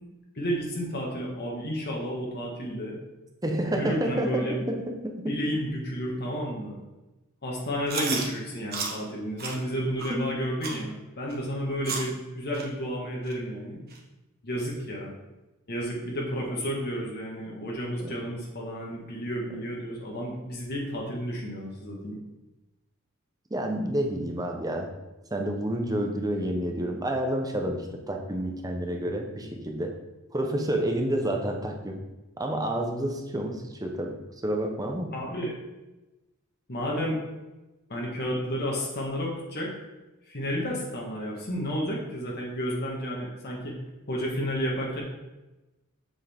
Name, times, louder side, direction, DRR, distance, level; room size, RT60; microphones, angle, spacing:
voice 1, 0.3-3.0 3.7-4.6 5.3-6.8 7.4-13.8 14.4-15.1 15.7-22.2 35.1-35.5 36.7-37.2 37.9-39.8 40.3-43.7 44.1-45.0, equal, 50° left, -2 dB, 1.6 m, -31 dB
voice 2, 3.4-5.4 8.1-8.2 10.1-10.2 18.0-18.1 23.5-24.9 25.3-29.9 30.3-32.0 32.4-34.2 34.4-35.1, right 1 dB, 15° right, 3 dB, 0.9 m, -29 dB
Chewing mastication, 7.9-8.3 8.7-8.9 9.4-9.6 10.0-10.1 10.6-10.8 11.3-11.4 11.8-12.1 12.5-12.6 13.3-13.4 13.9-14.0 14.6-14.7, right 4 dB, 45° right, 1.2 m, -32 dB
7.4 x 6.3 x 3.6 m, 1.0 s
head